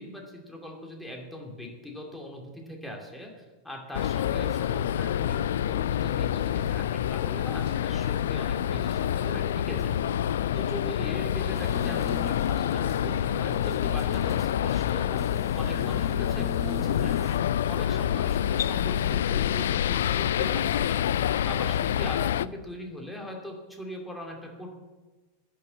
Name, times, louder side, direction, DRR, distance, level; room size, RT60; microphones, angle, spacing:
voice 1, 0.0-5.4 5.7-17.2 17.7-24.7, left 1 dB, 5° left, 1 dB, 2.6 m, -40 dB
sound 1, 3.9-22.5, left 10 dB, 60° left, 0.3 m, -27 dB
sound 2, 11.5-17.4, left 3 dB, 25° left, 1.5 m, -42 dB
10.5 x 6.8 x 9.3 m, 1.2 s
figure-of-eight pair, 90°, 0 cm